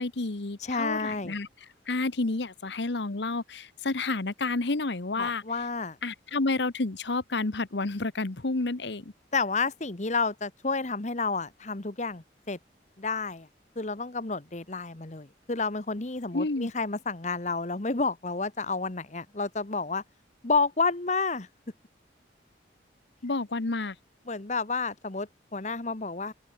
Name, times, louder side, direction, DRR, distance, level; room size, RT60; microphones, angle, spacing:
voice 1, 0.0-1.5 1.9-5.4 6.0-9.1 16.3-16.7 23.2-23.9, left 3 dB, 70° left, 1.1 m, -30 dB
voice 2, 0.6-1.4 5.2-6.0 9.3-12.6 13.0-13.5 13.7-20.0 20.4-21.5 24.3-26.3, left 4 dB, 40° left, 1.2 m, -30 dB
open air
head